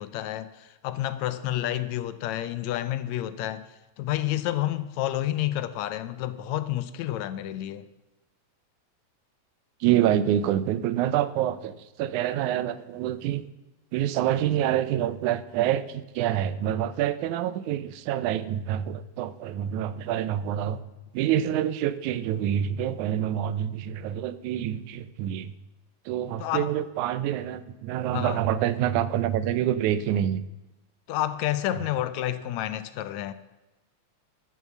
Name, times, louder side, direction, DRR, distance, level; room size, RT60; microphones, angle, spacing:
voice 1, 0.0-3.7 4.0-7.9 26.4-26.7 28.1-28.4 31.1-33.3, left 13 dB, 75° left, 1.9 m, -29 dB
voice 2, 9.8-13.4 13.9-20.8 21.1-25.5 26.1-30.4, right 11 dB, 90° right, 2.1 m, -27 dB
13.5 x 7.4 x 7.2 m
omnidirectional pair, 3.3 m